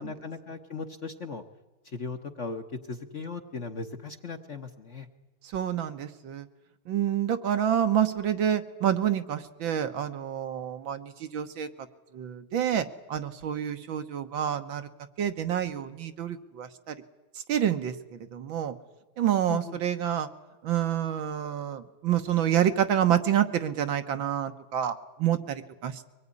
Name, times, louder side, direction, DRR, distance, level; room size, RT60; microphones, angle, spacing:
voice 1, 0.0-1.4 1.8-5.1 19.5-19.8, left 4 dB, 40° left, 6 dB, 1.2 m, -38 dB
voice 2, 5.4-6.5 6.9-11.7 12.1-14.9 15.2-17.0 17.4-18.8 19.2-20.3 20.6-26.1, right 10 dB, 70° right, 8 dB, 1.9 m, -28 dB
24.0 x 19.0 x 9.8 m, 1.2 s
omnidirectional pair, 2.3 m